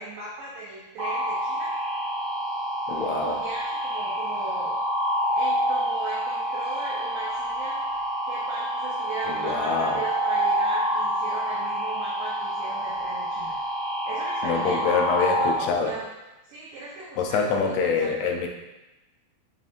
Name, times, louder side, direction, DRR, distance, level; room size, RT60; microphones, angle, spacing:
voice 1, 0.0-1.7 2.9-4.8 5.3-7.8 8.3-13.6 14.1-16.1 16.5-18.3, right 3 dB, 85° right, -5 dB, 1.8 m, -38 dB
sound 1, 1.0-15.5, equal, 70° right, 0.9 m, -27 dB
voice 2, 2.9-3.4 9.3-10.0 14.4-15.9 17.2-18.5, left 5 dB, 85° left, 3 dB, 2.4 m, -25 dB
7.1 x 2.5 x 2.4 m, 1.0 s
omnidirectional pair, 4.4 m